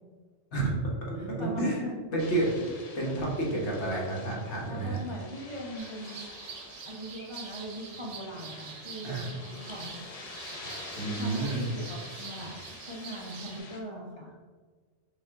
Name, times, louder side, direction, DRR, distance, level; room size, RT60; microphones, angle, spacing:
voice 1, 0.5-2.5 2.9-5.0 9.0-9.3 11.0-11.6, right 2 dB, 70° left, -3 dB, 1.4 m, -30 dB
voice 2, 1.2-1.9 3.0-3.1 4.6-6.2 6.8-9.9 11.2-12.6 12.9-14.3, equal, 35° right, -4 dB, 0.6 m, -40 dB
sound 1, 2.2-13.8, left 3 dB, 40° left, 0.6 m, -47 dB
sound 2, 5.8-13.6, right 6 dB, 80° right, 0.9 m, -45 dB
5.8 x 2.5 x 3.5 m, 1.5 s
omnidirectional pair, 1.2 m